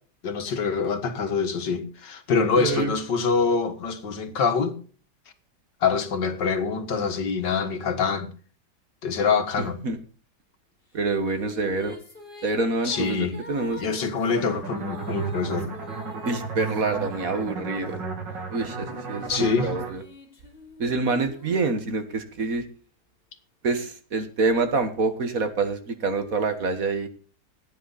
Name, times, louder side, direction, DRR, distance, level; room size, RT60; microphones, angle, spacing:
voice 1, 0.2-4.7 5.8-8.3 9.0-9.8 12.8-13.4 13.8-15.7 19.3-19.7, left 5 dB, 80° left, 2.2 m, -25 dB
voice 2, 2.5-2.9 9.6-10.0 10.9-11.9 12.4-13.8 16.2-18.0 18.5-20.0 20.8-22.6 23.6-27.1, right 3 dB, 55° right, 1.8 m, -26 dB
sound 1, 11.0-17.9 18.6-22.3, left 1 dB, 30° left, 3.6 m, -46 dB
sound 2, 14.3-19.9, right 4 dB, 85° right, 3.4 m, -33 dB
17.0 x 9.4 x 4.1 m
omnidirectional pair, 1.9 m